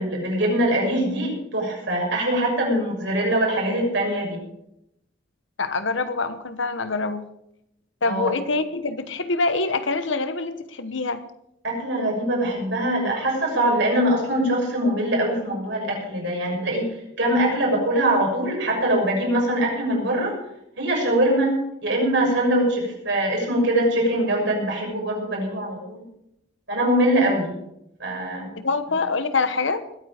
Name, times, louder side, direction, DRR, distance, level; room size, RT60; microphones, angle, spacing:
voice 1, 0.0-4.4 8.0-8.3 11.6-16.9 17.2-20.4 20.8-26.0 26.7-27.6 28.0-28.5, right 1 dB, 65° right, -1 dB, 6.5 m, -23 dB
voice 2, 5.6-7.2 8.0-11.2 28.6-29.8, left 3 dB, 70° left, 11 dB, 1.1 m, -25 dB
21.0 x 9.3 x 5.0 m, 0.80 s
head